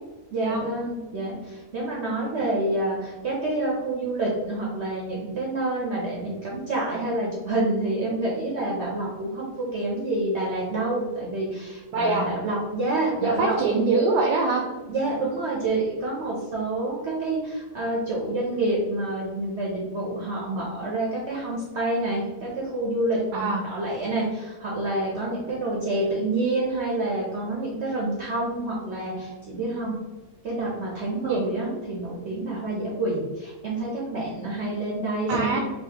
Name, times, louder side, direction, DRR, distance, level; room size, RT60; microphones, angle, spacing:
voice 1, 0.3-13.6 14.9-30.0 30.4-35.6, right 2 dB, 55° right, -4 dB, 0.8 m, -28 dB
voice 2, 11.9-12.3 13.2-14.6 23.3-23.6 31.2-31.4 35.3-35.6, right 3 dB, 85° right, 1 dB, 1.2 m, -23 dB
4.1 x 2.7 x 2.9 m, 1.2 s
omnidirectional pair, 1.8 m